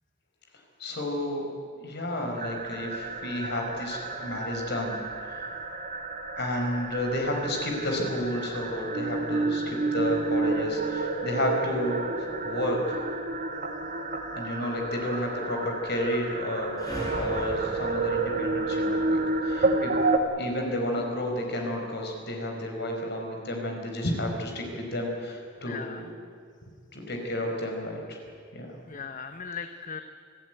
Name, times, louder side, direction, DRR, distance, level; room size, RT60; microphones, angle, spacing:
voice 1, 0.8-1.5 1.8-5.0 5.3-5.4 6.4-13.1 14.3-16.8 17.1-19.9 20.4-26.1 26.9-28.2 28.5-28.7, left 1 dB, 60° left, 2 dB, 5.1 m, -31 dB
sound 1, 2.4-20.2, right 3 dB, 45° right, 1.7 m, -30 dB
sound 2, 16.8-21.2, equal, 20° left, 6.4 m, -40 dB
voice 2, 25.6-26.0 28.9-30.0, left 6 dB, 40° left, 8 dB, 0.9 m, -38 dB
26.5 x 15.0 x 9.3 m, 2.3 s
head